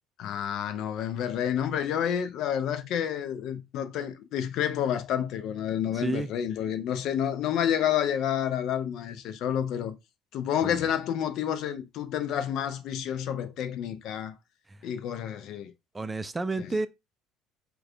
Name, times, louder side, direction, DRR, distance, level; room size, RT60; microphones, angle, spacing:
voice 1, 0.2-9.9 10.3-14.3 14.8-15.7 16.6-16.7, left 9 dB, 60° left, 0.4 m, -29 dB
voice 2, 6.0-6.3 10.6-10.8 14.7-14.8 15.9-16.9, right 3 dB, 20° right, 0.3 m, -30 dB
4.7 x 2.2 x 2.2 m
hypercardioid pair, 60°, 0 cm